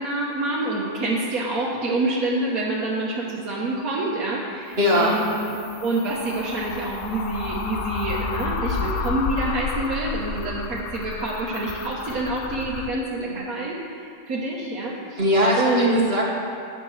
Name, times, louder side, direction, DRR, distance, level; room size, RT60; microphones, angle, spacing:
voice 1, 0.0-5.6 5.8-15.2 15.6-16.1, right 2 dB, 80° right, -6 dB, 1.7 m, -27 dB
sound 1, 4.7-12.9, left 5 dB, 65° left, 0.5 m, -31 dB
voice 2, 4.8-5.2 13.3-13.4 15.2-16.3, left 1 dB, 45° right, -5 dB, 2.0 m, -20 dB
13.5 x 9.6 x 3.3 m, 2.4 s
omnidirectional pair, 1.5 m